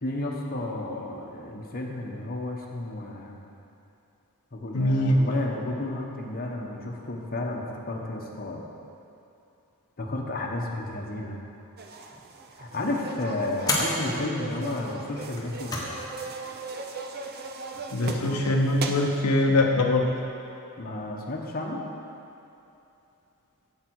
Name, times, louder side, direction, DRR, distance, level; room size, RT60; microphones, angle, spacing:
voice 1, 0.0-3.4 4.5-8.6 10.0-11.4 12.6-15.7 20.8-21.8, left 2 dB, 40° left, -1 dB, 1.0 m, -32 dB
voice 2, 4.7-5.2 17.9-20.1, left 1 dB, 85° left, 1 dB, 0.7 m, -22 dB
sound 1, 11.8-19.2, right 3 dB, 45° right, 0.6 m, -38 dB
sound 2, 12.1-12.5 13.6-14.0 15.3-16.0 16.3-16.4 17.5-18.0, left 2 dB, 15° left, 1.1 m, -31 dB
8.1 x 7.5 x 4.6 m, 2.8 s
head